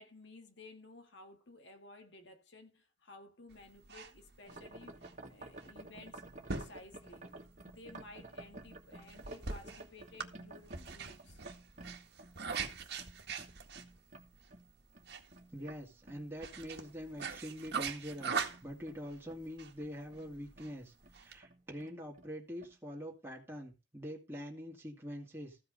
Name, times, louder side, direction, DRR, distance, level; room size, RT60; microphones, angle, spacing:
voice 1, 0.0-7.3 7.6-11.4, left 2 dB, 70° left, 2.0 m, -55 dB
sound 1, 3.5-21.4, right 5 dB, 60° right, 1.8 m, -43 dB
sound 2, 4.5-15.8 16.0-19.5 19.8-20.3 20.6-20.7 21.0-21.2 21.4-22.3 22.6-22.8, right 2 dB, 40° right, 2.1 m, -53 dB
voice 2, 15.5-25.6, equal, 15° right, 2.3 m, -45 dB
14.5 x 5.5 x 5.2 m
head